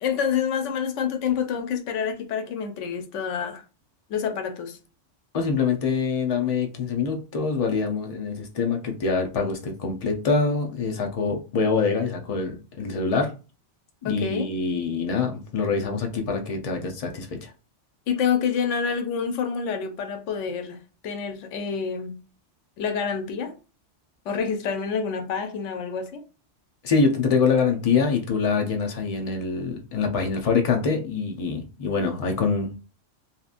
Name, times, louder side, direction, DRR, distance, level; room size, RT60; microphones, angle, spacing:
voice 1, 0.0-3.6 4.1-4.8 14.0-14.5 18.1-20.8 21.0-22.2 22.8-23.6 24.3-26.2, left 6 dB, 90° left, 0.9 m, -27 dB
voice 2, 5.3-13.3 14.0-17.5 26.8-32.8, left 5 dB, 45° left, 0.5 m, -25 dB
2.8 x 2.5 x 2.4 m
omnidirectional pair, 1.2 m